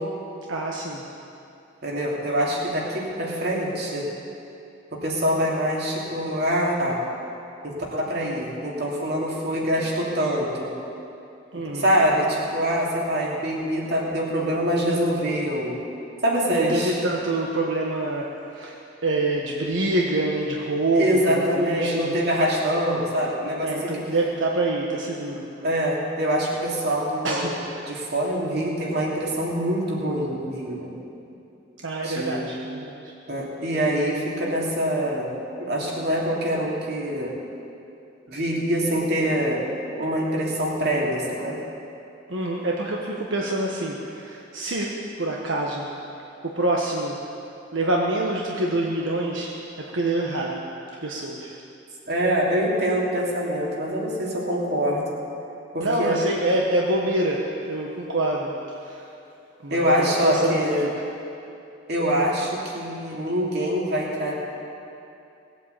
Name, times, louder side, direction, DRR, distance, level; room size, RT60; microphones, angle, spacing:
voice 1, 0.5-1.0 11.5-11.9 16.5-18.8 19.0-22.1 23.6-25.5 27.2-27.5 31.8-32.9 42.3-44.9 45.2-45.9 46.5-47.2 47.7-49.5 49.9-50.6 51.0-51.5 55.8-58.5 58.9-59.0 59.6-60.9, right 2 dB, 85° right, -2 dB, 1.3 m, -26 dB
voice 2, 1.8-4.0 5.0-7.0 7.6-10.7 11.7-15.8 16.2-17.0 20.9-24.1 25.6-30.9 32.0-32.5 33.3-35.3 35.6-37.3 38.3-39.7 40.0-41.6 52.1-55.0 55.7-56.2 59.7-60.8 61.9-64.3, equal, 55° right, -3 dB, 3.0 m, -24 dB
18.5 x 8.4 x 8.3 m, 2.7 s
head